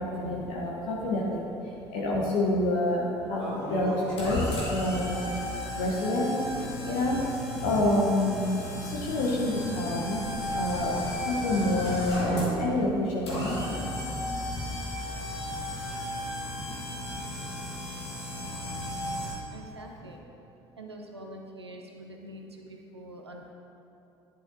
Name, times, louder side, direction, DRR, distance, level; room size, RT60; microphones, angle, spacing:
voice 1, 0.0-5.2 5.7-6.3 6.6-11.0 11.2-14.1 14.4-15.0 15.5-15.7 16.5-16.7 17.1-17.2 17.6-17.7 18.4-18.5, left 1 dB, 65° left, -4 dB, 1.0 m, -28 dB
sound 1, 3.4-19.3, left 1 dB, 85° left, 1.5 m, -35 dB
voice 2, 19.5-20.2 20.8-23.5, right 1 dB, 85° right, 2 dB, 0.6 m, -45 dB
10.5 x 8.4 x 2.7 m, 2.9 s
figure-of-eight pair, 50°, 13 cm